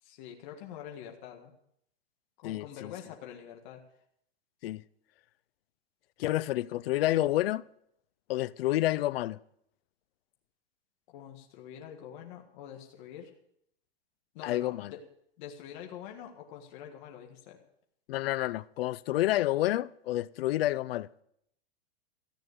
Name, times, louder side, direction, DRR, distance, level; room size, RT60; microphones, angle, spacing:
voice 1, 0.0-1.5 2.4-3.8 11.1-13.3 14.3-15.0 15.4-17.6, left 9 dB, 50° left, 1.8 m, -46 dB
voice 2, 2.4-2.9 4.6-4.8 6.2-7.6 8.3-9.4 14.4-14.9 18.1-21.1, left 15 dB, 65° left, 0.5 m, -29 dB
14.5 x 9.2 x 6.7 m
supercardioid pair, 155°, 31 cm